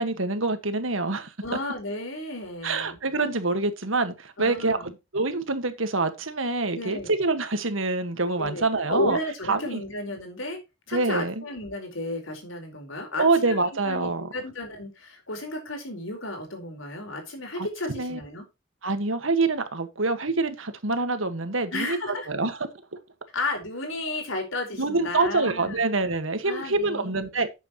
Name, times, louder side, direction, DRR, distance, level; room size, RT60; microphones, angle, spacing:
voice 1, 0.0-1.3 2.6-9.2 9.5-9.8 10.9-11.4 13.2-14.3 17.6-18.2 18.8-22.6 24.8-27.5, right 3 dB, 85° right, 1.8 m, -26 dB
voice 2, 1.4-3.0 4.4-4.9 6.7-7.1 8.4-10.6 10.9-13.6 13.8-18.4 21.7-22.3 23.3-25.8 26.4-27.4, left 2 dB, 85° left, 4.6 m, -33 dB
11.5 x 8.3 x 3.1 m
head